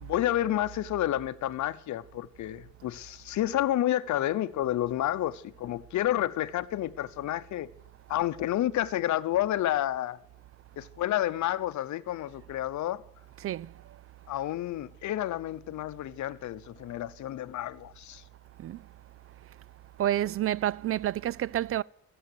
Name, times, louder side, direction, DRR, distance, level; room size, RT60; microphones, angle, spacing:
voice 1, 0.0-7.7 8.1-10.2 10.8-13.0 14.3-18.2, left 13 dB, 70° left, 0.8 m, -30 dB
voice 2, 13.4-14.0 18.6-18.8 20.0-21.8, right 12 dB, 50° right, 0.4 m, -29 dB
15.5 x 7.9 x 7.9 m
cardioid pair, 90°, 30 cm